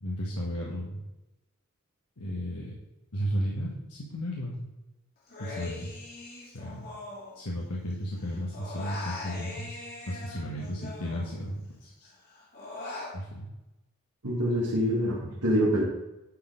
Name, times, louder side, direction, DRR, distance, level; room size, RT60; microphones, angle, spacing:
voice 1, 0.0-1.0 2.2-2.7 3.1-4.6 5.4-5.9 6.4-6.9 7.3-9.8 10.1-12.1 13.1-13.5, equal, 85° left, -4 dB, 1.5 m, -34 dB
Human voice, 5.3-7.9 8.2-11.7 12.0-13.1, left 3 dB, 45° left, 2.3 m, -41 dB
voice 2, 14.2-15.8, equal, 85° right, -7 dB, 2.3 m, -25 dB
10.5 x 4.3 x 5.2 m, 0.97 s
head